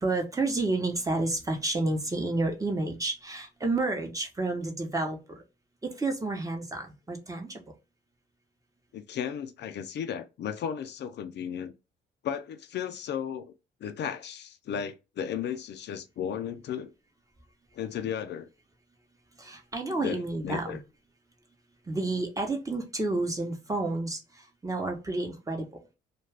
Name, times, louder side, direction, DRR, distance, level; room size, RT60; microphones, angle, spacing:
voice 1, 0.0-5.4 6.0-7.6 19.4-20.8 21.9-24.2 24.6-25.7, right 2 dB, 15° right, 0.8 m, -30 dB
voice 2, 8.9-11.7 12.2-13.5 13.8-16.9 17.7-18.5 19.9-20.8, left 8 dB, 60° left, 0.4 m, -35 dB
2.4 x 2.3 x 3.3 m
cardioid pair, 90°, 20 cm